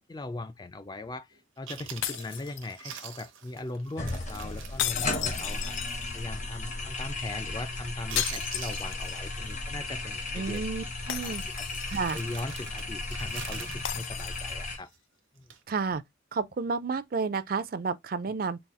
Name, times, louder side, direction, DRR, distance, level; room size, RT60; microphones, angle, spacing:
voice 1, 0.0-10.6 11.1-11.7 12.1-14.9 15.4-15.5, left 2 dB, 20° left, 0.3 m, -39 dB
Chewing mastication, 1.3-1.4 1.7-5.7 6.0-6.1 6.6-6.9 7.2-7.7 7.9-9.5 9.7-10.0 10.4-10.6 11.0-15.0 15.4-15.6, right 8 dB, 85° right, 0.8 m, -45 dB
sound 1, 2.0-3.1 4.8-6.4 8.2-9.4 9.7-9.8 11.1-12.2 13.8-14.8, left 11 dB, 85° left, 0.4 m, -35 dB
sound 2, 4.0-14.8, left 2 dB, 40° left, 0.8 m, -35 dB
voice 2, 10.3-11.4 11.9-12.2 15.7-16.0 16.3-18.6, right 4 dB, 50° right, 0.4 m, -31 dB
4.1 x 2.4 x 3.5 m
head